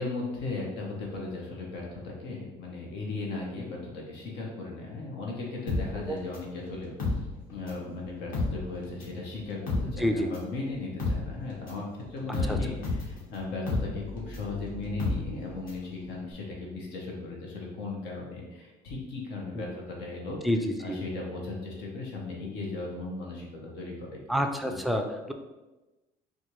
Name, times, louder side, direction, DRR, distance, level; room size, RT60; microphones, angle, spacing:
voice 1, 0.0-6.9 7.5-20.4 20.8-24.2 24.7-24.8, left 3 dB, 85° left, -2 dB, 0.9 m, -37 dB
sound 1, 5.7-7.9 8.2-15.9 16.2-16.3, left 3 dB, 55° left, 1.2 m, -32 dB
voice 2, 24.3-25.3, equal, ahead, 4 dB, 0.3 m, -27 dB
4.3 x 2.4 x 3.0 m, 1.1 s
cardioid pair, 110°, 17 cm